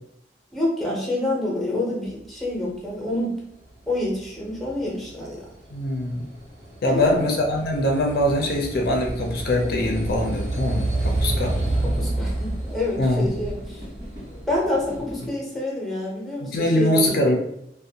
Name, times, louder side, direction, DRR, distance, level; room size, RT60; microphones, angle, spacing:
voice 1, 0.5-3.4 3.9-5.4 6.9-7.3 11.8-13.8 14.5-17.1, left 1 dB, ahead, -4 dB, 0.6 m, -27 dB
sound 1, 3.9-15.3, right 2 dB, 70° right, 0.9 m, -29 dB
voice 2, 5.7-6.2 6.8-11.6 13.0-13.3 16.4-17.4, left 1 dB, 55° left, 0 dB, 0.4 m, -22 dB
2.5 x 2.1 x 2.7 m, 0.78 s
head